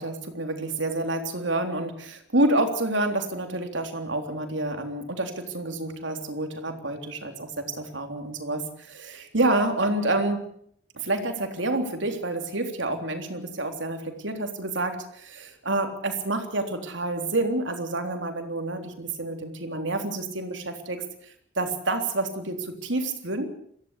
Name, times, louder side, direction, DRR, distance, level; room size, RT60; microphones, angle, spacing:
voice 1, 0.0-10.4 11.0-21.0 21.6-23.5, right 2 dB, 90° right, 5 dB, 3.6 m, -28 dB
23.5 x 16.0 x 8.3 m, 0.66 s
head